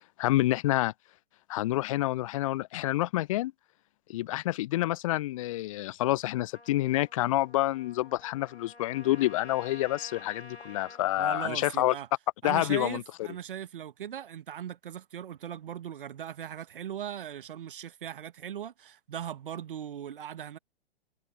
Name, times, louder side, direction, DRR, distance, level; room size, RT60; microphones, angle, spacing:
voice 1, 0.2-0.9 1.5-3.5 4.1-11.9 12.4-13.0, left 16 dB, 30° left, 0.7 m, -28 dB
Trumpet, 6.5-11.0, left 2 dB, 85° left, 6.0 m, -50 dB
voice 2, 11.2-12.1 12.4-20.6, right 10 dB, 55° right, 1.7 m, -39 dB
figure-of-eight pair, 115°, 32 cm